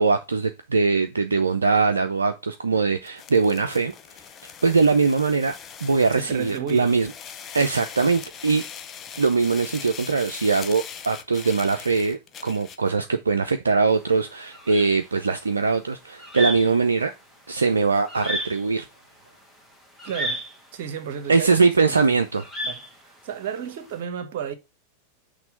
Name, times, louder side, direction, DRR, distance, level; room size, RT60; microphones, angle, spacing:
voice 1, 0.0-3.9 4.4-5.5 5.8-7.1 7.5-8.6 9.2-17.1 17.5-18.9 21.3-22.4, right 4 dB, 75° right, 0.4 m, -21 dB
sound 1, 3.0-12.9, left 8 dB, 25° left, 0.6 m, -41 dB
voice 2, 6.1-6.9 20.0-20.4 20.7-22.2 22.6-24.5, right 8 dB, 50° right, 1.0 m, -33 dB
sound 2, 13.9-23.9, right 1 dB, 5° left, 1.6 m, -33 dB
6.0 x 3.1 x 5.3 m
figure-of-eight pair, 90°, 0 cm